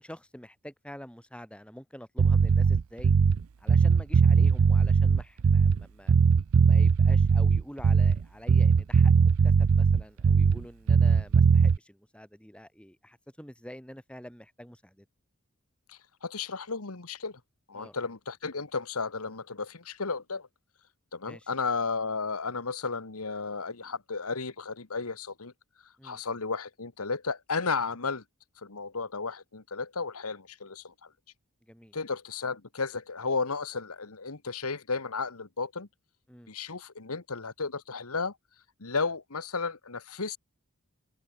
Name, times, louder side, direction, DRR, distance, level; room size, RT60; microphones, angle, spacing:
voice 1, 0.0-3.1 3.6-6.1 6.6-15.1 17.7-18.0 21.2-21.5 26.0-26.2 31.7-31.9 36.3-36.5, equal, 5° left, 4.8 m, -47 dB
Bass guitar, 2.2-3.4 3.7-5.8 6.1-8.2 8.5-10.6 10.9-11.8, right 5 dB, 75° right, 0.5 m, -20 dB
voice 2, 15.9-17.4 17.7-20.5 21.1-25.5 26.0-28.2 28.6-31.1 31.9-35.9 36.5-38.3 38.8-40.4, left 4 dB, 85° left, 1.7 m, -33 dB
open air
head